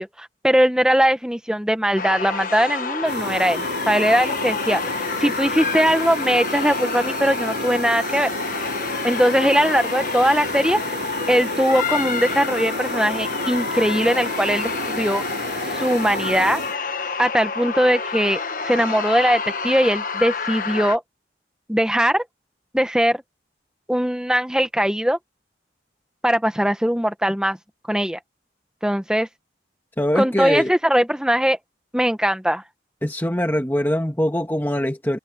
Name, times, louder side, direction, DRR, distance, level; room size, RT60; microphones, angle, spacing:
voice 1, 0.0-4.8 5.2-8.3 9.0-10.8 11.3-15.2 15.6-16.6 17.2-21.0 21.7-22.2 22.7-23.2 23.9-25.2 26.2-27.6 27.9-28.2 28.8-29.3 30.1-31.6 31.9-32.6, equal, 5° right, 1.2 m, -20 dB
sound 1, 2.0-21.0, left 4 dB, 45° left, 1.2 m, -28 dB
sound 2, 3.0-16.8, right 2 dB, 75° right, 6.9 m, -32 dB
voice 2, 30.0-30.7 33.0-35.2, equal, 10° left, 1.7 m, -22 dB
head